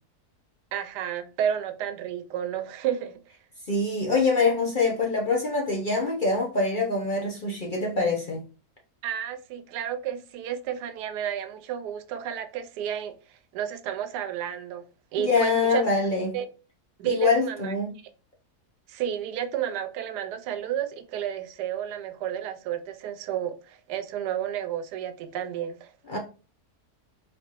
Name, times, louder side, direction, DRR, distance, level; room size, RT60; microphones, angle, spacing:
voice 1, 0.7-3.2 9.0-13.2 13.5-14.8 15.1-15.8 16.3-16.5 17.0-17.7 18.9-25.9, right 9 dB, 90° right, 1.2 m, -31 dB
voice 2, 3.7-8.4 15.2-16.4 17.0-17.9 26.1-26.2, left 3 dB, 45° left, 0.7 m, -24 dB
4.2 x 3.5 x 3.0 m
omnidirectional pair, 1.7 m